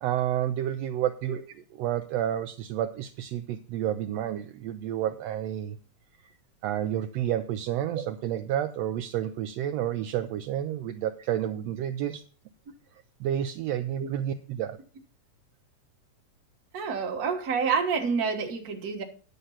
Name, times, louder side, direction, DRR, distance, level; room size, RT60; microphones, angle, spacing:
voice 1, 0.0-1.4 1.8-5.8 6.2-6.3 6.6-12.2 13.2-14.8, right 11 dB, 80° right, 1.5 m, -30 dB
voice 2, 16.7-19.0, right 5 dB, 45° right, 1.4 m, -28 dB
10.5 x 6.7 x 5.6 m
omnidirectional pair, 3.5 m